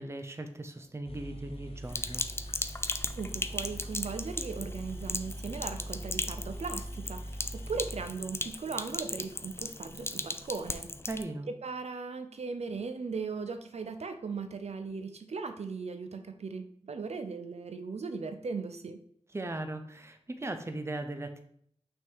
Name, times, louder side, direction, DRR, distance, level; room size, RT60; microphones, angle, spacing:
voice 1, 0.0-2.3 11.1-11.5 19.3-21.4, right 2 dB, 25° right, 7 dB, 0.6 m, -38 dB
sound 1, 0.8-0.9 1.1-8.9, right 1 dB, 60° left, 0.9 m, -42 dB
Sink (filling or washing), 1.9-11.2, left 2 dB, 20° left, 0.4 m, -37 dB
voice 2, 3.2-10.9 11.6-19.0, right 4 dB, 75° right, 8 dB, 0.5 m, -38 dB
6.0 x 3.6 x 4.6 m, 0.65 s
wide cardioid pair, 80°, 11 cm